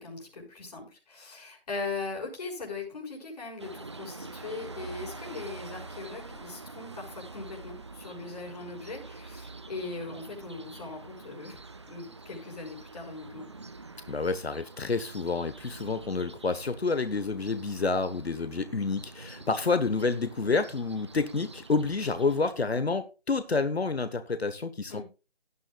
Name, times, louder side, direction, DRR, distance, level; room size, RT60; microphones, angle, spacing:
voice 1, 0.0-11.6 11.9-13.5 24.9-25.0, left 3 dB, 40° left, 6.2 m, -40 dB
sound 1, 3.6-22.5, right 3 dB, 30° right, 0.7 m, -46 dB
voice 2, 14.1-25.0, left 4 dB, 85° left, 1.3 m, -29 dB
16.5 x 9.9 x 2.4 m
figure-of-eight pair, 165°, 31 cm